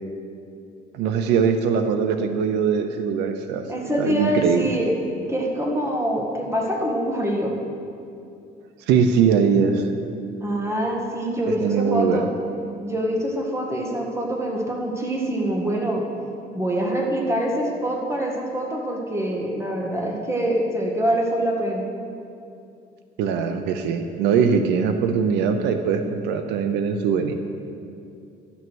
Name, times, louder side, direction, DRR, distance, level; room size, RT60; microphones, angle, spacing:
voice 1, 0.9-3.6 4.0-4.7 8.9-9.9 11.6-12.3 23.2-27.3, right 6 dB, 90° right, 8 dB, 0.7 m, -21 dB
voice 2, 3.7-4.9 5.3-7.5 10.4-12.3 12.8-16.0 16.5-21.9, right 1 dB, 15° right, 0 dB, 1.8 m, -25 dB
12.0 x 7.0 x 6.2 m, 2.6 s
cardioid pair, 110°, 17 cm